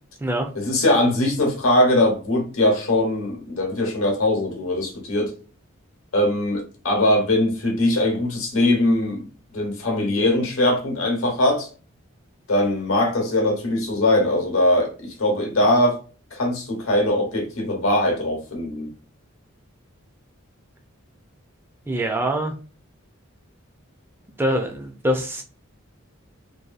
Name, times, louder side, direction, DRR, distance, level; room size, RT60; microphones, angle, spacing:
voice 1, 0.5-5.3 6.1-9.3 9.5-11.7 12.5-16.0 16.3-18.9, left 1 dB, 75° left, 0.9 m, -21 dB
voice 2, 21.9-22.5 24.4-25.4, right 1 dB, 10° right, 0.4 m, -24 dB
2.7 x 2.3 x 2.4 m
head